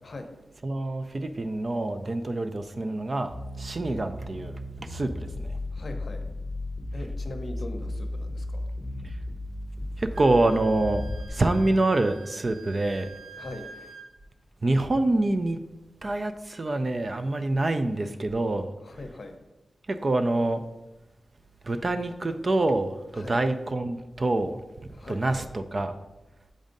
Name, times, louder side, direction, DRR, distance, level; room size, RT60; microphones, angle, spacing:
voice 1, 0.0-0.3 5.7-6.2 6.9-8.6 13.4-13.7 18.8-19.3 23.1-23.4 24.9-25.4, left 2 dB, 50° left, 5 dB, 0.6 m, -40 dB
voice 2, 0.6-5.6 9.0-9.2 10.0-13.1 14.6-15.6 16.0-18.7 19.9-20.6 21.6-26.0, right 2 dB, 35° right, 9 dB, 0.3 m, -26 dB
sound 1, 3.3-11.3, left 1 dB, 5° right, 1.0 m, -35 dB
Wind instrument woodwind instrument, 10.1-14.1, right 5 dB, 60° right, 0.9 m, -47 dB
7.2 x 2.6 x 5.1 m, 1.0 s
wide cardioid pair, 140°, 0 cm